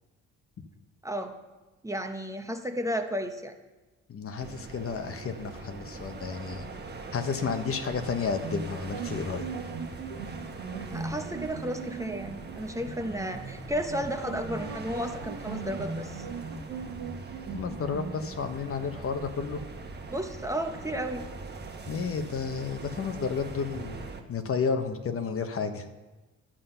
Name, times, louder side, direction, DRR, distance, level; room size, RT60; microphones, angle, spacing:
voice 1, 1.0-1.3 1.8-3.5 10.9-16.3 20.1-21.2, equal, 10° right, 5 dB, 0.9 m, -33 dB
voice 2, 4.1-6.6 7.1-9.5 17.5-19.6 21.9-25.8, left 5 dB, 50° left, 7 dB, 1.1 m, -32 dB
sound 1, 4.4-24.2, right 3 dB, 35° right, 1.2 m, -42 dB
sound 2, 8.4-18.2, right 5 dB, 90° right, 1.6 m, -39 dB
11.5 x 7.4 x 5.7 m, 1.2 s
cardioid pair, 90°, 30 cm